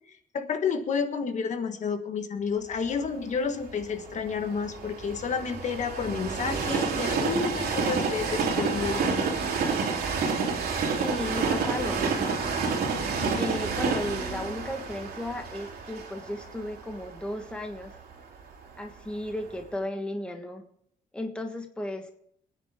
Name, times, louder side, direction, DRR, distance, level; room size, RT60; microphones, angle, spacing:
voice 1, 0.3-9.4, left 6 dB, 50° left, 7 dB, 1.4 m, -30 dB
Train, 2.9-18.9 19.5-19.6, right 5 dB, 75° right, 3.1 m, -29 dB
voice 2, 11.0-12.4 13.3-17.9 18.8-20.6 21.1-22.1, left 1 dB, 5° left, 3 dB, 1.4 m, -34 dB
27.0 x 9.8 x 3.6 m, 0.67 s
wide cardioid pair, 180°, 16 cm